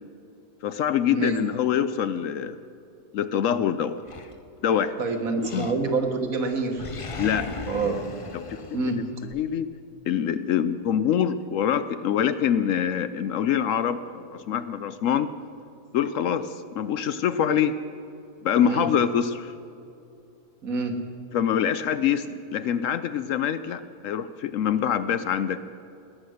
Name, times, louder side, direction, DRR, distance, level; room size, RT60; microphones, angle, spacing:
voice 1, 0.6-2.6 3.1-4.0 4.6-5.0 5.4-5.7 7.2-7.5 8.3-8.6 8.9-9.0 9.3-9.7 10.1-15.3 15.9-17.7 18.4-19.5 21.3-25.6, left 9 dB, 70° left, 12 dB, 0.9 m, -25 dB
Animal, 4.1-4.9 5.4-6.2 6.5-9.4, left 3 dB, 40° left, 0.5 m, -38 dB
voice 2, 5.0-6.9 7.7-8.1 8.7-9.0 18.6-18.9 20.6-21.0, right 3 dB, 65° right, 4 dB, 1.9 m, -27 dB
19.5 x 9.4 x 6.5 m, 2.6 s
omnidirectional pair, 1.6 m